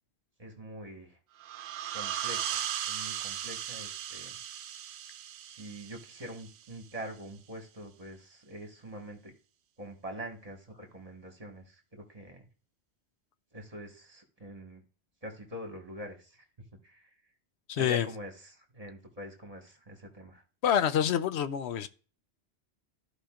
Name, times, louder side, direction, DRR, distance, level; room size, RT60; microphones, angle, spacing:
voice 1, 0.4-1.2 1.6-4.4 5.4-9.3 9.8-12.5 13.5-14.8 15.2-16.4 16.8-17.1 17.7-20.4, right 1 dB, 35° right, 1.7 m, -44 dB
sound 1, 1.4-6.7, right 10 dB, 75° right, 0.8 m, -37 dB
voice 2, 17.7-18.1 20.6-21.9, left 9 dB, 75° left, 0.8 m, -27 dB
14.0 x 5.0 x 2.5 m
omnidirectional pair, 1.1 m